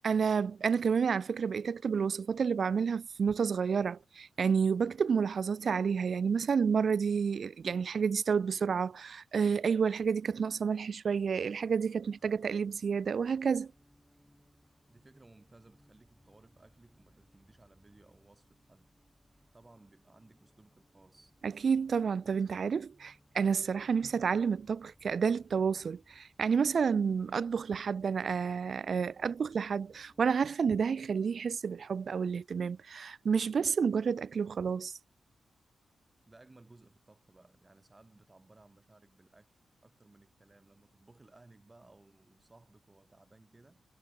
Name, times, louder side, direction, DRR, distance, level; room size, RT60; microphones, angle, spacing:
voice 1, 0.0-13.7 21.4-35.0, right 6 dB, 50° right, 0.6 m, -30 dB
sound 1, 11.9-30.5, equal, ahead, 6.8 m, -67 dB
voice 2, 14.9-18.9 19.5-21.4 36.3-43.8, right 2 dB, 20° right, 4.9 m, -60 dB
wide cardioid pair, 140°, 0 cm